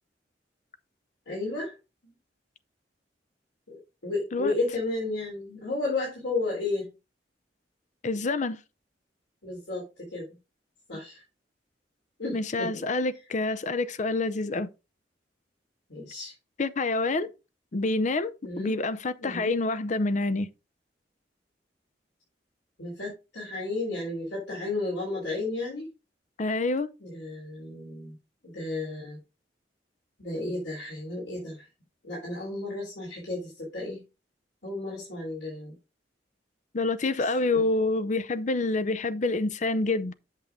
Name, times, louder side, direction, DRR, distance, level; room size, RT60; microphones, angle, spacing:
voice 1, 1.3-1.7 3.7-6.9 9.4-10.3 10.9-11.2 12.2-12.8 15.9-16.3 18.4-18.7 19.2-19.5 22.8-25.9 27.0-28.2 28.4-29.2 30.2-31.6 32.0-34.0 34.6-35.7 37.5-37.6, left 2 dB, 85° left, 3.8 m, -33 dB
voice 2, 8.0-8.6 12.3-14.7 16.6-17.3 17.7-20.5 26.4-26.9 36.7-40.1, left 2 dB, 45° left, 0.6 m, -27 dB
8.2 x 6.7 x 3.6 m
head